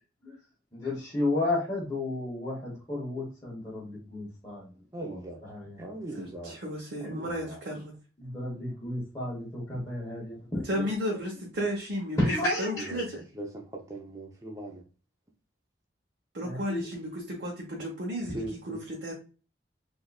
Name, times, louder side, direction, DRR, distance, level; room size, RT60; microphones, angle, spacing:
voice 1, 0.7-4.6 5.0-5.8 8.2-10.8 12.2-12.9 16.4-16.8, left 2 dB, 20° left, 1.1 m, -32 dB
voice 2, 4.9-5.4 5.8-6.6 7.0-7.6 12.8-14.8 18.3-18.8, right 2 dB, 20° right, 0.6 m, -40 dB
voice 3, 6.1-8.0 10.5-13.2 16.3-19.1, equal, 80° right, 0.9 m, -34 dB
3.8 x 2.5 x 2.3 m
head